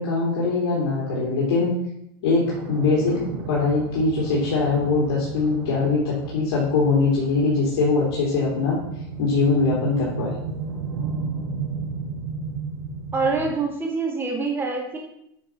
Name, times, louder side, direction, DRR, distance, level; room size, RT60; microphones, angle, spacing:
voice 1, 0.0-1.7 2.2-8.8 9.2-10.3, left 4 dB, 60° left, -5 dB, 3.5 m, -22 dB
sound 1, 2.4-13.5, right 4 dB, 50° right, 3.8 m, -33 dB
voice 2, 13.1-15.0, right 4 dB, 15° right, 0 dB, 2.4 m, -25 dB
9.5 x 5.8 x 6.2 m, 0.76 s
supercardioid pair, 145°, 13 cm